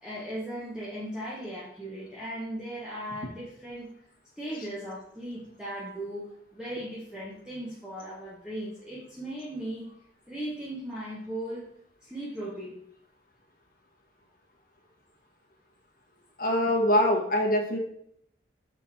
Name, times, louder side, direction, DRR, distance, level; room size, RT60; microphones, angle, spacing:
voice 1, 0.0-3.9 4.4-6.3 6.5-9.9 10.3-11.6 12.0-12.7, right 1 dB, 5° right, -8 dB, 1.4 m, -37 dB
voice 2, 16.4-17.8, left 1 dB, 50° left, -1 dB, 1.7 m, -23 dB
6.4 x 5.3 x 4.4 m, 0.71 s
head